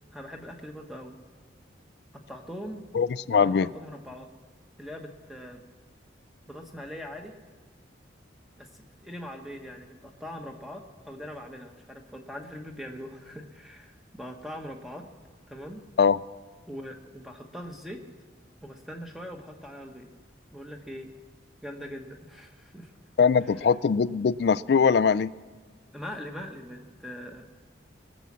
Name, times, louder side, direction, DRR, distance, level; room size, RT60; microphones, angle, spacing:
voice 1, 0.1-1.1 2.3-2.9 3.3-4.3 4.8-5.6 6.5-7.3 8.6-15.1 15.5-15.8 16.7-18.0 18.6-20.1 20.5-21.1 21.6-22.9 23.4-23.7 25.9-27.5, equal, ahead, 3 dB, 1.1 m, -41 dB
voice 2, 2.9-3.7 16.0-16.2 23.2-25.3, left 6 dB, 55° left, 18 dB, 0.3 m, -22 dB
21.0 x 7.1 x 7.4 m, 1.4 s
head